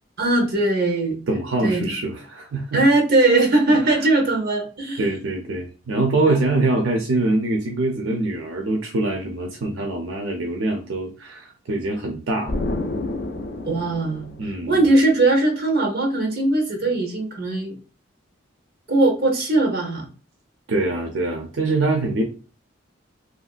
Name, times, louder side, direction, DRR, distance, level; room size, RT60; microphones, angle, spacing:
voice 1, 0.2-1.2 1.6-2.0 2.7-5.1 6.3-6.4 13.6-14.3 14.7-17.7 18.9-20.1, right 2 dB, 50° right, 2 dB, 0.9 m, -20 dB
voice 2, 1.3-2.8 3.3-3.5 3.8-4.1 5.0-12.6 14.4-14.9 20.7-22.2, right 2 dB, 75° right, 1 dB, 0.5 m, -24 dB
Explosion, 12.5-15.1, left 2 dB, 55° left, 0.5 m, -29 dB
3.0 x 2.6 x 2.4 m, 0.37 s
head